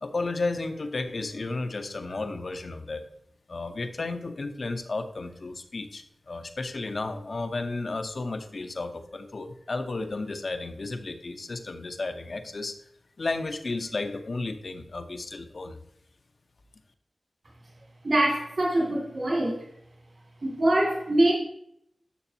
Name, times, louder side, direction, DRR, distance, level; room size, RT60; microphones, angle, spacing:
voice 1, 0.0-3.0 3.5-12.8 13.2-15.8, left 3 dB, 55° left, 8 dB, 0.8 m, -33 dB
voice 2, 18.0-19.7 20.4-21.3, right 1 dB, 55° right, -3 dB, 2.3 m, -24 dB
11.0 x 7.0 x 2.8 m, 0.73 s
wide cardioid pair, 95°, 0 cm